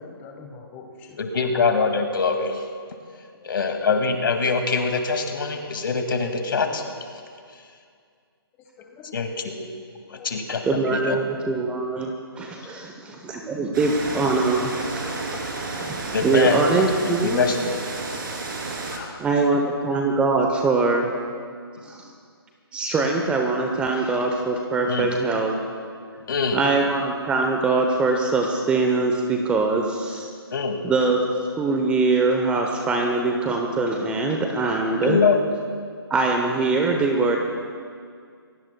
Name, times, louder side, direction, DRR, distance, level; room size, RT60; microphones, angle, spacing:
voice 1, 0.0-1.3 8.8-9.1 10.1-10.4 12.6-12.9 15.2-15.4 18.0-18.5 18.8-19.4, left 5 dB, 15° left, 1 dB, 1.2 m, -43 dB
voice 2, 1.2-2.6 3.4-6.8 9.1-9.5 10.1-11.2 16.1-16.6 17.0-17.6 24.9-25.2 26.3-26.6 30.5-30.8 35.0-35.4, left 4 dB, 60° left, 5 dB, 2.2 m, -23 dB
voice 3, 10.6-14.7 15.0-15.3 15.7-16.0 16.2-17.4 19.2-21.1 21.8-22.1 22.7-25.5 26.5-30.3 30.8-31.2 31.6-35.2 36.1-37.4, right 3 dB, 10° right, 2 dB, 0.8 m, -23 dB
sound 1, 13.7-19.0, right 3 dB, 55° right, 3.1 m, -31 dB
26.0 x 17.0 x 2.3 m, 2.2 s
figure-of-eight pair, 150°, 13 cm